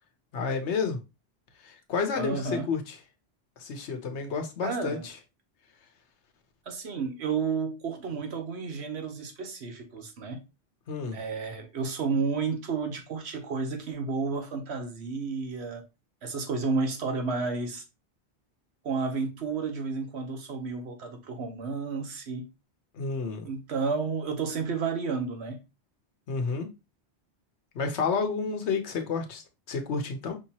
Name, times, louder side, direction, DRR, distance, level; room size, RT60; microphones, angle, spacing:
voice 1, 0.3-1.0 1.6-3.0 3.6-5.2 10.9-11.2 22.9-23.5 26.3-26.7 27.7-30.4, left 5 dB, 80° left, 1.1 m, -30 dB
voice 2, 2.2-2.7 4.6-5.1 6.7-10.4 11.1-15.8 16.2-17.8 18.8-22.5 23.4-25.6, right 4 dB, 70° right, 1.1 m, -31 dB
5.2 x 3.0 x 2.8 m
omnidirectional pair, 1.2 m